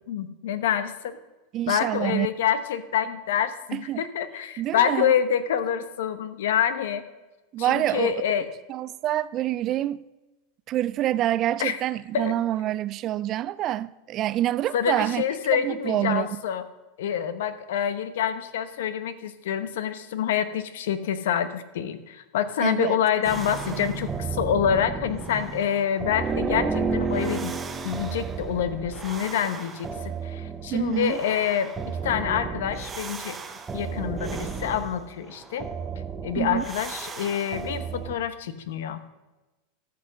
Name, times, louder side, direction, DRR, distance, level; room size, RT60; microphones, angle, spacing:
voice 1, 0.1-1.2 1.7-7.1 7.6-8.5 11.6-11.8 12.1-12.3 14.7-16.6 17.0-27.5 27.8-33.4 33.7-35.7 36.2-39.0, left 9 dB, 80° left, 1.0 m, -27 dB
voice 2, 1.5-2.3 3.7-4.0 4.6-5.1 7.5-8.2 8.7-10.0 10.7-15.2 15.5-16.4 22.6-23.0 23.7-23.9 30.7-31.2 36.4-36.6, right 13 dB, 35° right, 0.3 m, -26 dB
sound 1, 23.2-38.2, right 5 dB, 15° right, 0.8 m, -32 dB
13.5 x 6.0 x 6.5 m
supercardioid pair, 145°, 0 cm